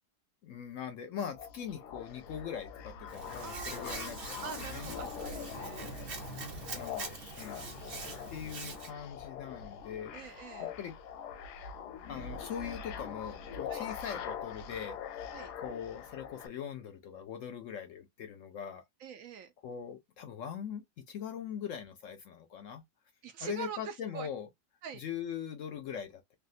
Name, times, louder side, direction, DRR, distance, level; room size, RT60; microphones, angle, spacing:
voice 1, 0.4-4.9 6.6-7.8 8.3-11.0 12.1-15.0 15.6-18.8 19.6-22.8 23.4-24.5 24.9-26.3, left 8 dB, 65° left, 0.8 m, -42 dB
sound 1, 1.2-16.5, left 7 dB, 85° left, 1.2 m, -43 dB
Hands, 3.1-8.9, right 4 dB, 45° right, 0.9 m, -43 dB
voice 2, 3.4-6.0 10.1-10.7 13.7-13.9 15.3-15.5 19.0-19.5 23.2-24.3 24.8-25.0, right 6 dB, 70° right, 0.8 m, -44 dB
3.4 x 2.4 x 2.4 m
omnidirectional pair, 1.7 m